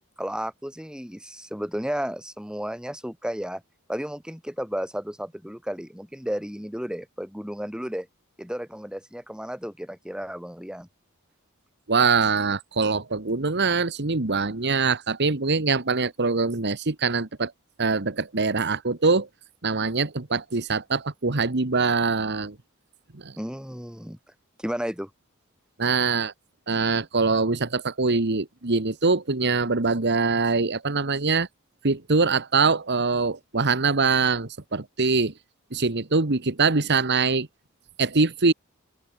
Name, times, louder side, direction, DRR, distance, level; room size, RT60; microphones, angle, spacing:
voice 1, 0.2-3.6 3.9-8.1 8.4-10.9 23.4-24.2 24.6-25.1, equal, 5° right, 3.3 m, -33 dB
voice 2, 11.9-17.5 17.8-19.3 19.6-22.6 23.2-23.3 25.8-26.3 26.7-31.5 31.8-35.3 35.7-37.5 38.0-38.5, right 4 dB, 55° right, 1.5 m, -23 dB
open air
head